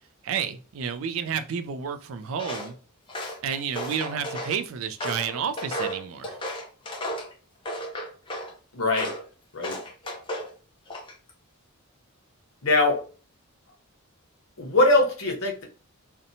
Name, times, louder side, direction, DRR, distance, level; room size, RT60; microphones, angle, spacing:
voice 1, 0.2-2.7 3.4-6.4, right 7 dB, 65° right, 0.3 m, -30 dB
Walk footsteps, 2.4-2.7 3.1-4.6 5.0-7.3 7.7-8.5 8.9-9.3 9.6-10.5 10.9-11.3, equal, 25° left, 0.5 m, -34 dB
voice 2, 8.7-9.1 9.5-9.8 12.6-13.0 14.6-15.6, left 2 dB, 70° left, 0.9 m, -22 dB
2.8 x 2.1 x 2.6 m
head